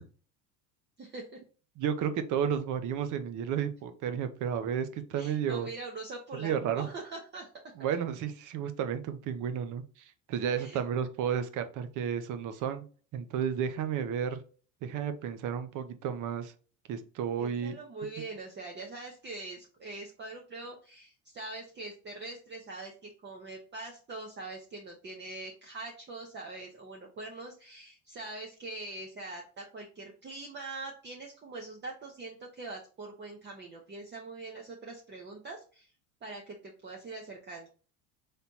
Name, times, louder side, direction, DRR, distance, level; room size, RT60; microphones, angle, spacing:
voice 1, 1.0-1.4 5.1-7.5 10.6-10.8 17.4-35.9 36.2-37.7, right 2 dB, 25° right, 0 dB, 0.9 m, -43 dB
voice 2, 1.8-5.7 6.3-6.9 7.8-9.8 10.3-12.8 13.1-14.4 14.8-16.5 16.9-17.7, right 8 dB, 50° right, 9 dB, 0.8 m, -32 dB
4.4 x 3.4 x 2.7 m, 0.39 s
supercardioid pair, 95°, 41 cm